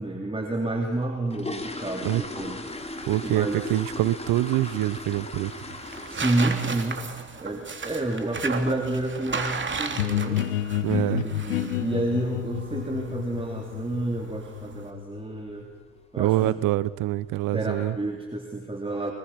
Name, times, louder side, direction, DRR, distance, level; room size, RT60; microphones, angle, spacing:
voice 1, 0.0-2.6 3.2-3.6 6.1-7.1 7.4-10.4 11.1-15.7 16.1-16.6 17.5-19.1, right 2 dB, 15° right, 2 dB, 3.6 m, -29 dB
sound 1, 0.9-6.8 7.1-7.4 7.8-7.9 8.2-8.4 8.7-9.0 9.2-9.3 9.9-10.0 10.3-10.4 10.9-11.2 11.5-11.6 12.0-12.2 12.5-12.6 13.1-13.2 13.8-14.1 14.4-14.7 15.1-15.2 15.6-15.7 16.5-16.6 17.0-17.5 18.0-18.1, left 2 dB, 20° left, 3.5 m, -37 dB
sound 2, 2.7-14.9, right 4 dB, 35° right, 3.2 m, -36 dB
voice 2, 3.1-5.5 10.8-11.2 16.2-18.0, right 16 dB, 65° right, 19 dB, 0.9 m, -25 dB
sound 3, 10.0-15.6, left 12 dB, 90° left, 0.8 m, -30 dB
25.0 x 21.0 x 5.9 m, 1.2 s
hypercardioid pair, 55°, 34 cm